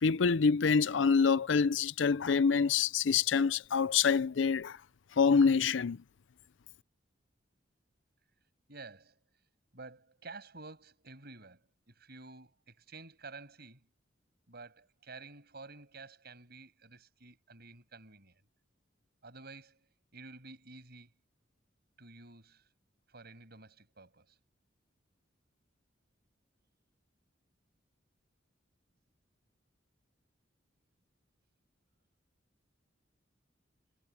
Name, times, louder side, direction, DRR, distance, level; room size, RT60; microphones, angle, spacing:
voice 1, 0.0-4.8 5.2-6.0, left 5 dB, 75° left, 0.5 m, -26 dB
voice 2, 8.7-9.2 9.7-13.9 14.5-18.4 19.2-19.9 20.1-21.1 22.0-22.7 23.1-24.4, right 3 dB, 60° right, 7.1 m, -51 dB
head